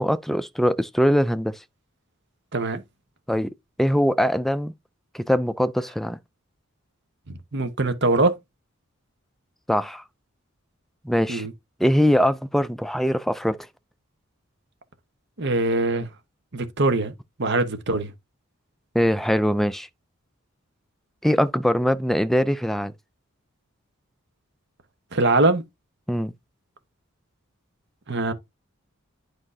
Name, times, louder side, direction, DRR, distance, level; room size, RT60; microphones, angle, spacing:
voice 1, 0.0-1.6 3.3-3.5 3.8-4.7 5.1-6.2 9.7-10.0 11.0-11.5 11.8-13.6 18.9-19.9 21.2-22.9 26.1-26.3, equal, ahead, 0.3 m, -22 dB
voice 2, 2.5-2.8 7.3-8.4 11.3-11.5 15.4-16.1 16.5-17.1 17.4-18.1 25.1-25.6 28.1-28.3, right 2 dB, 55° right, 1.1 m, -22 dB
9.8 x 4.9 x 2.7 m
head